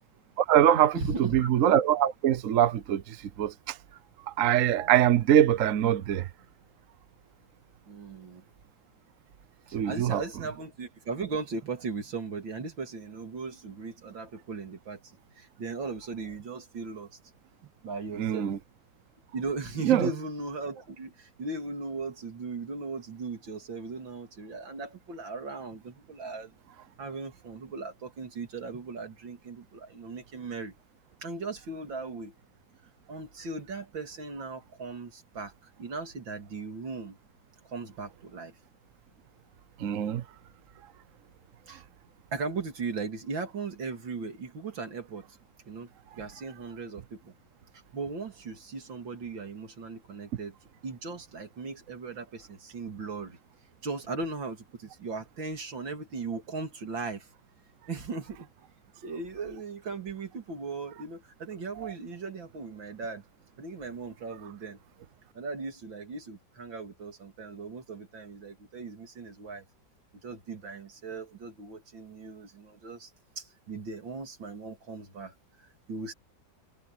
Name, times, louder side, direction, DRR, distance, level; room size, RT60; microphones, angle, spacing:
voice 1, 0.4-0.9 1.2-3.8 4.3-6.3 9.7-10.2 18.2-18.6 19.8-20.1 39.8-40.2 61.8-61.9, right 11 dB, 55° right, 1.1 m, -23 dB
voice 2, 0.9-1.5 7.9-8.4 9.7-17.2 17.6-18.6 19.3-26.5 27.0-30.7 31.2-32.3 33.1-37.2 37.6-38.5 41.7-41.8 42.3-45.3 45.7-47.3 47.9-50.5 50.8-53.4 53.8-57.3 57.9-58.5 59.0-63.2 63.6-64.8 65.3-69.6 70.2-73.1 73.4-76.1, right 4 dB, 85° right, 3.5 m, -38 dB
omnidirectional pair, 2.0 m